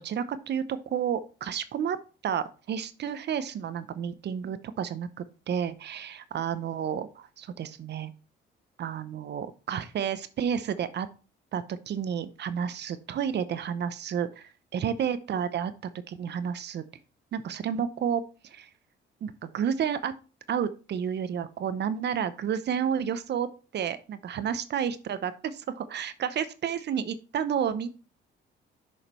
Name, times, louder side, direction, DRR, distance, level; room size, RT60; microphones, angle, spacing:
voice 1, 0.0-2.0 2.2-8.1 8.8-11.1 11.5-15.7 16.1-16.8 17.3-18.7 19.2-20.1 20.5-23.5 23.7-27.9, right 8 dB, 60° right, 13 dB, 0.8 m, -31 dB
7.0 x 5.0 x 4.4 m, 0.34 s
cardioid pair, 90°, 20 cm